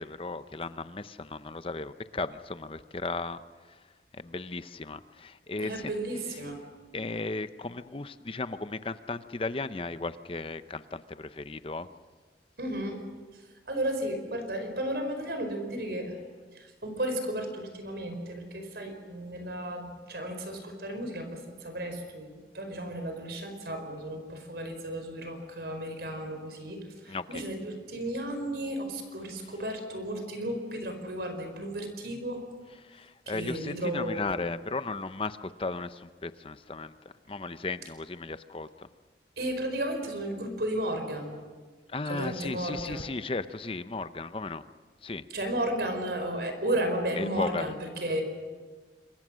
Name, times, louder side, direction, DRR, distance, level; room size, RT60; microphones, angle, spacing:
voice 1, 0.0-3.4 3.7-3.9 4.1-5.9 6.9-11.9 27.1-27.3 32.8-36.9 37.3-38.9 41.9-44.6 45.0-45.2 47.1-47.7, left 3 dB, 30° left, 12 dB, 0.7 m, -35 dB
voice 2, 5.6-6.6 12.6-13.0 13.3-16.2 16.5-32.4 33.3-34.4 39.4-41.3 42.1-43.0 45.3-48.2, right 1 dB, 65° right, 6 dB, 4.7 m, -34 dB
27.0 x 23.0 x 6.3 m, 1.4 s
head